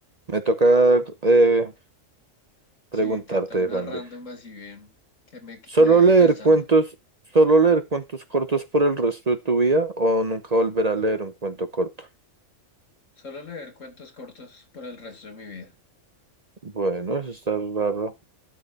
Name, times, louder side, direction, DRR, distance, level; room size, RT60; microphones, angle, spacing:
voice 1, 0.3-1.7 2.9-3.9 5.7-6.9 7.3-8.0 8.3-11.9 16.6-18.1, right 3 dB, 35° right, 0.9 m, -20 dB
voice 2, 3.0-4.9 5.3-6.6 13.2-15.7, left 3 dB, 80° left, 2.5 m, -41 dB
12.5 x 5.4 x 4.0 m
omnidirectional pair, 1.3 m